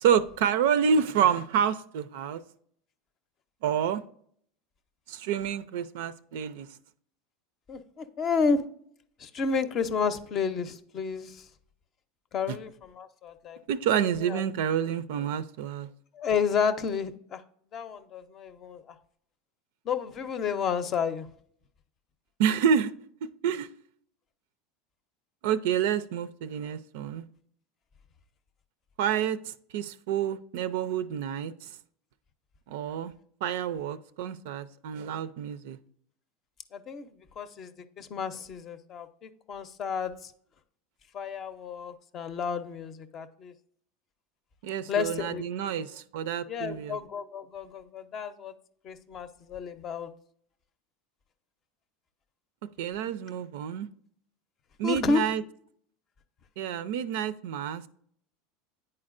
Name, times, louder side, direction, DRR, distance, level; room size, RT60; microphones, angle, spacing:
voice 1, 0.0-2.4 3.6-4.0 5.1-6.7 12.5-12.6 13.7-15.9 22.4-22.9 23.2-23.7 25.4-27.3 29.0-31.7 32.7-33.1 33.4-35.8 44.6-47.0 52.8-53.9 54.8-55.4 56.6-57.8, right 8 dB, 75° right, 14 dB, 0.4 m, -28 dB
voice 2, 7.7-8.6 9.2-11.5 12.3-13.6 14.0-14.4 16.1-17.4 17.7-18.9 19.8-21.3 36.7-37.1 37.4-37.7 38.0-40.3 41.1-43.5 44.9-45.9 46.5-48.5 48.8-50.1 54.8-55.2, left 5 dB, 40° left, 11 dB, 0.6 m, -31 dB
9.6 x 4.3 x 2.5 m, 0.64 s
supercardioid pair, 120°, 0 cm